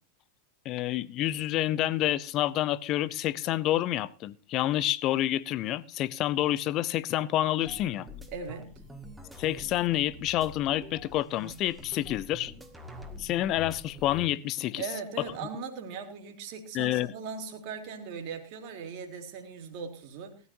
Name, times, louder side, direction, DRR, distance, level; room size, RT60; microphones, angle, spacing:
voice 1, 0.6-8.1 9.4-12.5 13.2-14.9 16.7-17.1, left 14 dB, 35° left, 0.7 m, -28 dB
sound 1, 7.6-14.3, left 1 dB, 5° right, 1.9 m, -46 dB
voice 2, 8.3-8.7 14.8-20.4, right 5 dB, 45° right, 2.7 m, -39 dB
18.5 x 13.5 x 2.7 m
figure-of-eight pair, 90°, 0 cm